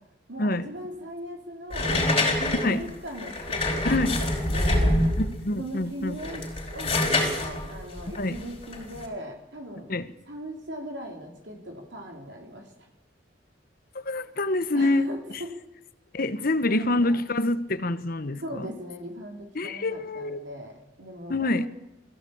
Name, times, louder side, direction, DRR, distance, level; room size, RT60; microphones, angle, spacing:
voice 1, 0.3-5.0 5.6-6.4 6.7-9.9 10.3-12.9 14.7-15.5 16.6-17.2 18.4-21.7, equal, 65° right, 2 dB, 3.5 m, -39 dB
sound 1, 1.7-5.4 6.1-9.0, left 1 dB, 30° left, 5.0 m, -26 dB
voice 2, 3.8-4.2 5.2-6.2 8.2-8.4 9.9-10.1 13.9-15.1 15.3-15.4 16.1-18.7 19.5-20.4 21.3-21.7, left 2 dB, 50° left, 13 dB, 1.1 m, -26 dB
21.0 x 15.5 x 8.7 m, 0.91 s
head